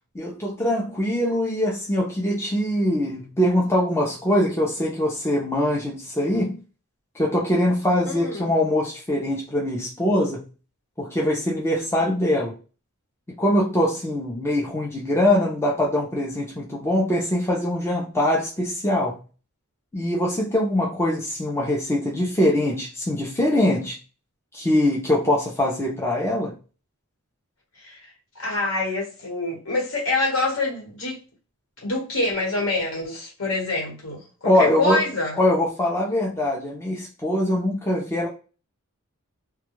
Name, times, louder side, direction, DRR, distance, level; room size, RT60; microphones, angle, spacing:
voice 1, 0.2-6.6 7.2-10.5 11.0-12.6 13.4-19.2 19.9-24.0 24.5-26.5 34.4-35.0 35.4-38.3, left 1 dB, 10° left, 0.5 m, -23 dB
voice 2, 8.1-8.5 27.8-31.2 31.8-35.4, left 2 dB, 65° left, 1.3 m, -26 dB
2.3 x 2.2 x 3.0 m
head